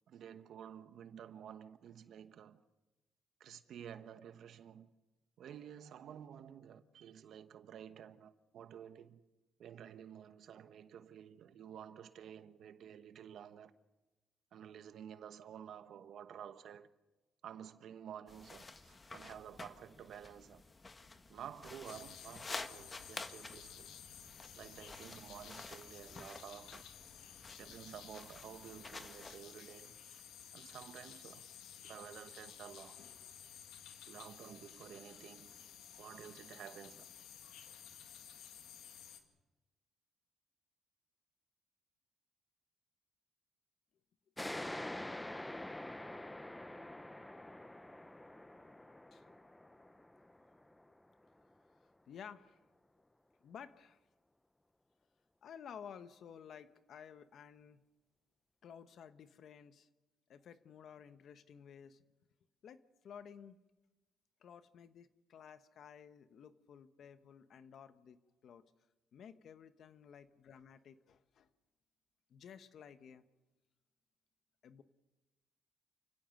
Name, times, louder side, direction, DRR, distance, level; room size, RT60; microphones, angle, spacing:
voice 1, 0.1-2.6 3.4-4.9 5.4-9.2 9.6-13.7 14.5-16.9 17.4-20.6 21.3-23.9 24.6-26.8 27.6-30.2 30.5-31.4 31.8-33.0 34.0-35.5 36.0-37.1, right 9 dB, 70° right, 1.1 m, -52 dB
sound 1, 18.3-29.4, left 3 dB, 30° left, 1.5 m, -51 dB
sound 2, 21.8-39.2, left 9 dB, 85° left, 2.2 m, -54 dB
sound 3, 44.4-51.5, left 1 dB, 10° left, 0.8 m, -46 dB
voice 2, 49.1-49.5 52.1-52.6 53.4-54.0 55.4-57.8 58.6-59.9 60.3-62.0 62.6-63.6 64.4-68.6 69.1-71.5 72.3-73.3 74.6-74.8, left 7 dB, 65° left, 1.2 m, -54 dB
28.5 x 16.5 x 6.6 m
cardioid pair, 90°, 0 cm